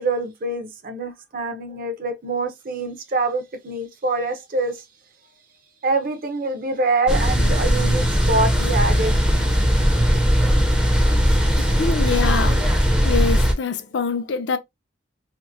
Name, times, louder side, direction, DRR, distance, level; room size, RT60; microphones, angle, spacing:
voice 1, 0.0-4.8 5.8-9.2 11.6-11.7, right 3 dB, 45° right, 0.6 m, -25 dB
sound 1, 7.1-13.5, equal, 5° right, 0.5 m, -18 dB
voice 2, 11.6-12.8 13.0-14.6, left 5 dB, 65° left, 0.5 m, -25 dB
2.9 x 2.5 x 2.4 m
head